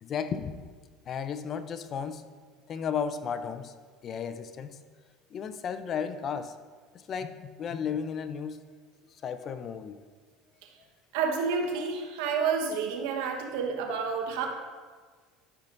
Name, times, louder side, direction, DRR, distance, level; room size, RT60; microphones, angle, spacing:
voice 1, 0.0-0.6 1.1-2.2 2.7-3.7 4.0-4.8 5.3-6.6 6.9-8.6 9.2-10.0, left 7 dB, 40° left, 11 dB, 0.6 m, -34 dB
voice 2, 11.1-14.5, right 5 dB, 80° right, 2 dB, 1.2 m, -29 dB
12.5 x 5.8 x 2.6 m, 1.5 s
supercardioid pair, 110°, 0 cm